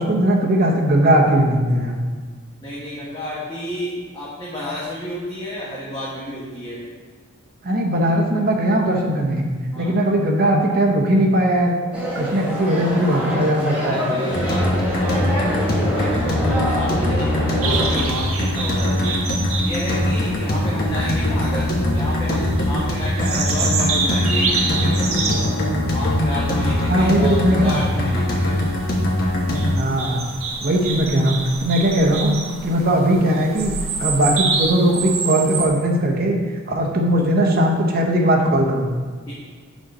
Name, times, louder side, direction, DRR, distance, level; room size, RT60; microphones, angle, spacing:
voice 1, 0.0-2.0 7.6-9.5 9.7-11.8 12.1-14.1 17.3-17.6 26.9-27.8 29.7-30.3 30.6-31.4 31.6-32.4 32.6-33.7 34.0-36.4 36.7-38.9, right 1 dB, 45° right, 1 dB, 0.8 m, -19 dB
voice 2, 2.6-6.8 9.7-10.0 13.8-19.2 19.6-25.5 25.9-28.6 39.3-39.4, equal, 20° left, -8 dB, 1.1 m, -31 dB
sound 1, 11.9-18.0, equal, 5° right, 1.2 m, -26 dB
sound 2, 14.3-29.7, left 1 dB, 45° left, 1.1 m, -22 dB
sound 3, 17.6-35.7, right 4 dB, 70° right, 0.8 m, -28 dB
6.3 x 4.1 x 5.4 m, 1.5 s
head